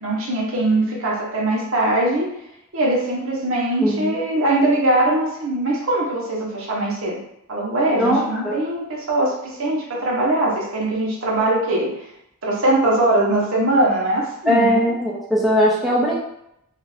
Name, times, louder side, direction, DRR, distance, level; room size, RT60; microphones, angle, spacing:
voice 1, 0.0-2.3 2.7-7.2 7.5-11.9 12.4-14.8, right 1 dB, 65° right, -4 dB, 0.8 m, -21 dB
voice 2, 3.8-4.2 8.0-8.6 14.5-16.2, equal, ahead, -5 dB, 0.4 m, -19 dB
2.4 x 2.4 x 3.2 m, 0.79 s
head